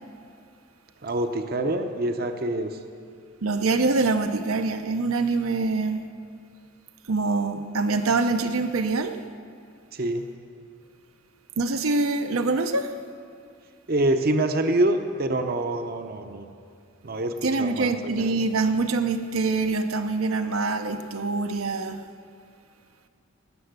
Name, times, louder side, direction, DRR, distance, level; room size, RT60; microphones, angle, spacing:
voice 1, 1.0-2.8 9.9-10.2 13.9-16.5 17.0-18.3, right 1 dB, 45° right, 6 dB, 0.7 m, -26 dB
voice 2, 3.4-6.1 7.1-9.2 11.6-12.9 17.4-22.0, right 3 dB, 85° right, 7 dB, 0.7 m, -25 dB
18.0 x 6.9 x 8.0 m, 2.3 s
head